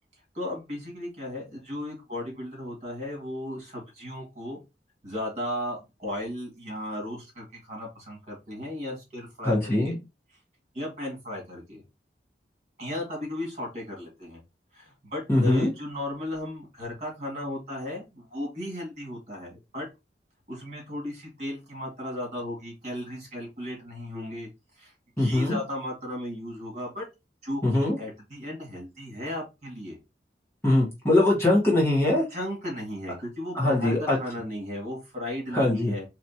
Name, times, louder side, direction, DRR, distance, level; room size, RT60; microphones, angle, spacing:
voice 1, 0.3-4.6 5.0-10.0 10.7-11.8 12.8-14.4 14.7-19.9 20.5-24.5 24.8-27.1 27.4-30.0 32.3-36.1, left 1 dB, 40° right, -1 dB, 2.1 m, -35 dB
voice 2, 9.4-10.0 15.3-15.7 25.2-25.6 27.6-28.0 30.6-32.2 33.5-34.2 35.5-35.9, left 1 dB, 15° left, -5 dB, 1.5 m, -22 dB
4.2 x 3.1 x 2.8 m, 0.24 s
head